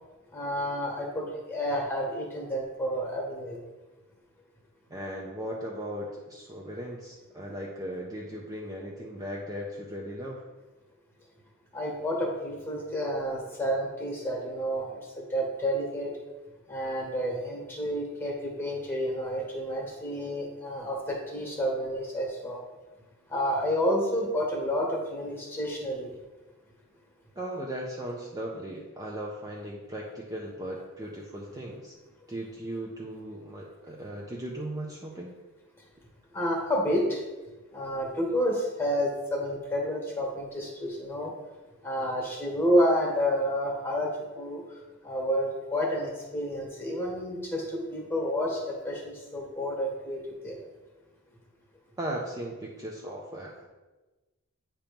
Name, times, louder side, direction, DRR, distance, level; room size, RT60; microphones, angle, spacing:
voice 1, 0.3-3.6 11.7-14.8 15.3-16.1 16.7-22.6 23.3-26.1 36.3-37.2 37.7-41.3 41.8-44.1 44.3-44.6 45.0-50.6, equal, 10° left, -1 dB, 1.5 m, -29 dB
voice 2, 4.9-10.4 27.4-31.9 32.3-35.3 52.0-53.7, right 1 dB, 15° right, -3 dB, 0.6 m, -37 dB
8.7 x 2.9 x 5.2 m, 1.2 s
head